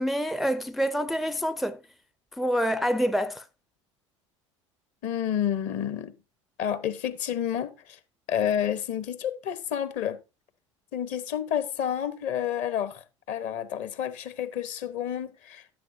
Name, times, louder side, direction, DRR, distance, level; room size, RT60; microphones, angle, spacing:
voice 1, 0.0-1.8 2.4-3.4, equal, ahead, 0.4 m, -27 dB
voice 2, 5.0-6.1 6.6-8.0 8.3-10.2 10.9-15.7, left 9 dB, 50° left, 1.0 m, -30 dB
10.5 x 9.7 x 2.7 m
figure-of-eight pair, 70°, 16 cm